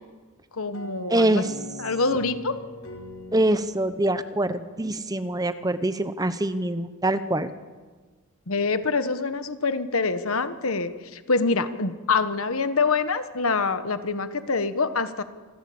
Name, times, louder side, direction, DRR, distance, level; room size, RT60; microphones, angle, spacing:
voice 1, 0.5-1.4 1.8-2.6 8.5-15.2, left 4 dB, 70° left, 11 dB, 1.3 m, -25 dB
sound 1, 0.7-5.4, left 1 dB, 85° left, 3.1 m, -42 dB
voice 2, 1.1-1.5 3.3-7.5, right 1 dB, 15° right, 12 dB, 0.9 m, -24 dB
26.0 x 15.0 x 8.7 m, 1.4 s
head